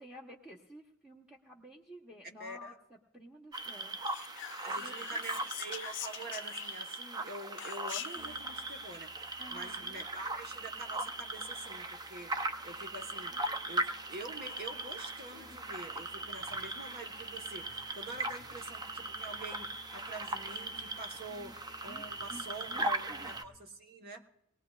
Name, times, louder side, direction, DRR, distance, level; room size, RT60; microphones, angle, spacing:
voice 1, 0.0-4.2 4.8-5.2 9.4-10.0 13.3-13.4 18.6-18.7 21.3-23.3, equal, 5° right, -4 dB, 1.0 m, -53 dB
voice 2, 2.4-2.7 4.6-12.3 12.6-21.5 21.8-24.2, right 2 dB, 50° right, 3 dB, 1.3 m, -46 dB
sound 1, 3.5-23.4, right 2 dB, 20° right, 0.6 m, -39 dB
Whispering, 4.0-7.0 7.6-8.3, left 13 dB, 60° left, 0.4 m, -44 dB
Musical instrument, 8.1-23.6, left 1 dB, 80° right, 5.5 m, -60 dB
22.0 x 18.5 x 2.4 m, 0.76 s
head